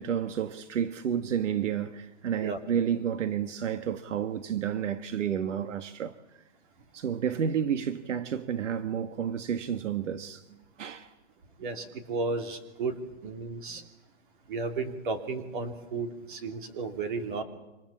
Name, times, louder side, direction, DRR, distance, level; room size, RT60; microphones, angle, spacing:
voice 1, 0.0-6.1 6.9-11.1 13.7-13.9, right 8 dB, 80° right, 1.5 m, -31 dB
voice 2, 11.6-13.8 14.5-17.4, right 4 dB, 45° right, 3.0 m, -33 dB
28.0 x 25.5 x 7.3 m
hypercardioid pair, 180°, 36 cm